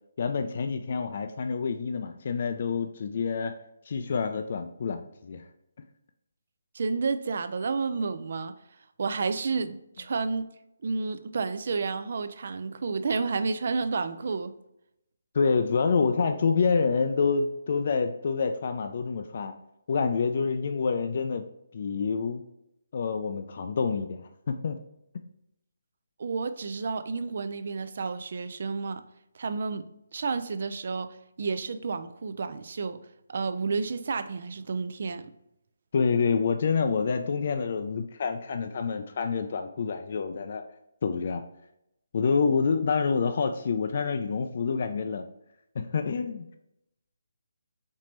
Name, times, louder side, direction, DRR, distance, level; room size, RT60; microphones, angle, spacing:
voice 1, 0.2-3.5 3.9-5.4 15.3-19.5 19.9-21.4 21.7-22.4 22.9-24.8 35.9-40.6 41.0-41.4 42.1-45.3 45.8-46.5, left 5 dB, 50° left, 0.3 m, -27 dB
voice 2, 6.7-8.6 9.0-10.4 10.8-14.5 26.2-29.0 29.3-29.9 30.1-33.0 33.3-35.3, right 4 dB, 55° right, 0.3 m, -31 dB
4.2 x 3.0 x 3.2 m
figure-of-eight pair, 150°, 0 cm